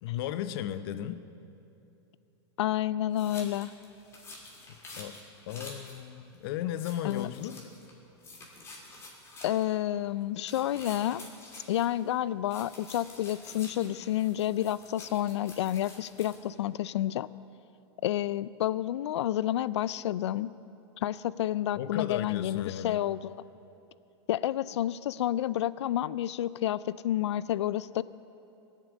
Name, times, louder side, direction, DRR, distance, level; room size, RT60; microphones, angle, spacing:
voice 1, 0.0-1.2 5.0-5.2 5.5-7.7 21.7-23.0, left 11 dB, 60° left, 12 dB, 0.7 m, -35 dB
voice 2, 2.6-3.7 7.0-7.3 9.4-11.3 11.7-17.3 18.0-20.5 21.0-23.3 24.3-28.0, left 12 dB, 85° left, 18 dB, 0.4 m, -30 dB
sound 1, 3.1-6.0 6.3-6.4 6.7-7.9 8.2-9.8 10.4-12.2 12.5-16.4, left 2 dB, 20° left, 2.7 m, -49 dB
18.0 x 7.4 x 8.4 m, 2.9 s
supercardioid pair, 140°, 14 cm